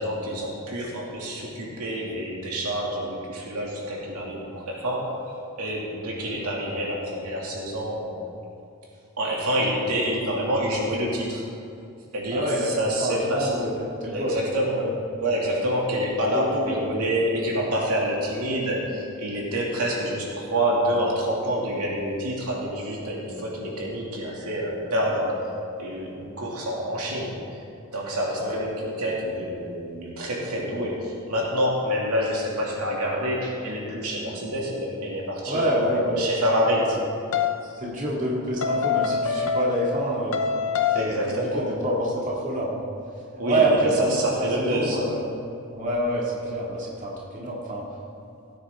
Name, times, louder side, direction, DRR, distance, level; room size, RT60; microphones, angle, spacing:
voice 1, 0.0-5.1 5.6-8.2 9.2-11.4 12.1-13.6 14.1-14.8 15.2-25.5 25.8-27.6 27.9-36.9 40.9-41.7 43.4-45.0, equal, 90° right, -3 dB, 2.5 m, -27 dB
voice 2, 12.3-12.7 13.0-13.7 14.0-14.4 14.7-14.9 16.3-16.8 28.4-28.6 35.5-36.3 37.6-40.4 40.9-41.1 41.4-42.8 43.4-44.2 44.6-45.2 45.8-47.9, right 1 dB, 35° right, -5 dB, 2.3 m, -26 dB
sound 1, 37.3-37.6 38.6-40.0 40.3-41.2, left 6 dB, 70° left, 0.7 m, -25 dB
17.0 x 9.4 x 3.7 m, 2.6 s
head